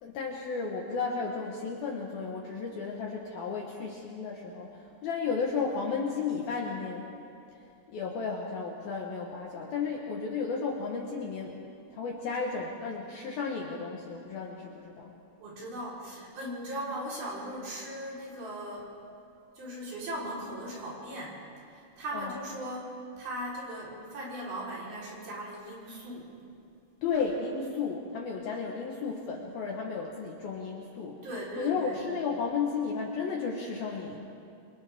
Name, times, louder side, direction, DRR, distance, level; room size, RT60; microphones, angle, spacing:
voice 1, 0.0-7.1 7.9-11.6 11.9-15.1 22.1-22.3 27.0-31.2 31.6-34.2, left 5 dB, 65° left, -1 dB, 2.6 m, -33 dB
voice 2, 15.4-18.9 19.6-21.4 21.7-26.3 31.2-32.0, right 1 dB, 50° right, -6 dB, 5.9 m, -38 dB
29.0 x 24.5 x 3.7 m, 2.5 s
omnidirectional pair, 5.6 m